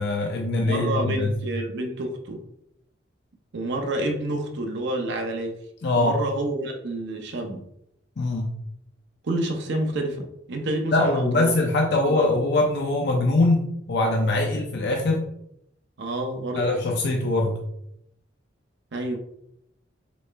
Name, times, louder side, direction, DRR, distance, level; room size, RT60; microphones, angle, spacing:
voice 1, 0.0-1.3 5.8-6.2 8.2-8.5 10.9-15.2 16.6-17.6, left 2 dB, 60° left, 1 dB, 0.6 m, -22 dB
voice 2, 0.6-2.4 3.5-5.6 5.9-7.6 9.2-11.5 12.0-12.3 16.0-16.6 18.9-19.2, right 1 dB, 65° right, 4 dB, 0.7 m, -28 dB
4.1 x 3.2 x 3.3 m, 0.77 s
head